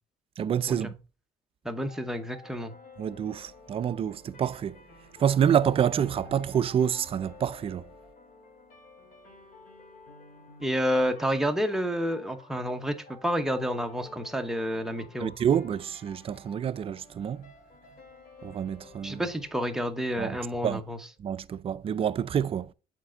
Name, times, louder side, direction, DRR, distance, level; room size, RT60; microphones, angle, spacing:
voice 1, 0.4-1.0 3.0-4.8 5.2-7.8 15.2-17.4 18.4-19.2 20.2-20.4 20.6-20.8 21.2-22.7, right 8 dB, 35° right, 0.4 m, -27 dB
voice 2, 1.6-2.7 10.6-15.3 19.0-21.0, equal, 5° right, 0.8 m, -29 dB
sound 1, 1.9-20.8, left 3 dB, 55° left, 2.2 m, -52 dB
7.3 x 4.3 x 3.8 m
cardioid pair, 110°, 17 cm